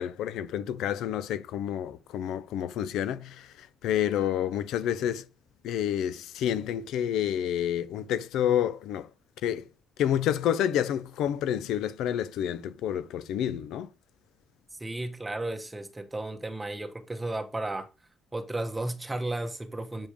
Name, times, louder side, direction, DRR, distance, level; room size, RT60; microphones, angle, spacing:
voice 1, 0.0-5.3 5.6-9.1 9.4-9.6 10.0-13.9, left 10 dB, 85° left, 0.6 m, -29 dB
voice 2, 14.7-17.9 18.3-20.1, right 2 dB, 15° right, 1.2 m, -34 dB
7.3 x 5.1 x 5.0 m
cardioid pair, 90°, 0 cm